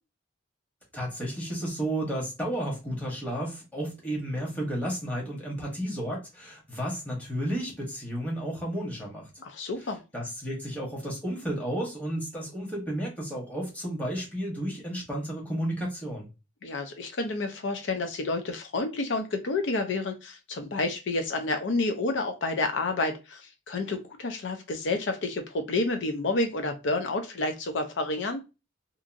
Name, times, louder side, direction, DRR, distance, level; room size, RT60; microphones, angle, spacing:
voice 1, 0.9-9.3 9.8-16.3, right 1 dB, 10° left, 1.1 m, -32 dB
voice 2, 9.4-10.0 16.6-28.4, left 2 dB, 75° left, 0.5 m, -29 dB
2.8 x 2.5 x 2.5 m
head